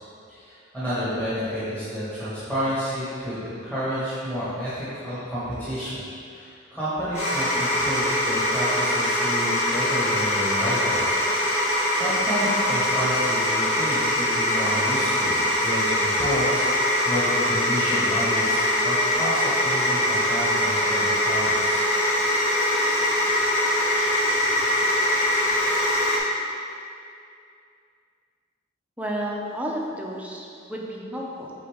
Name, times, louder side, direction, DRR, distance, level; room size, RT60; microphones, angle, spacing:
voice 1, 0.3-6.0 6.3-11.2 11.7-16.7 17.0-21.8, equal, 10° left, -13 dB, 1.5 m, -30 dB
sound 1, 7.1-26.2, left 1 dB, 35° left, 1.5 m, -23 dB
voice 2, 29.0-31.5, equal, 5° right, -2 dB, 0.7 m, -31 dB
8.1 x 4.1 x 3.6 m, 2.5 s
head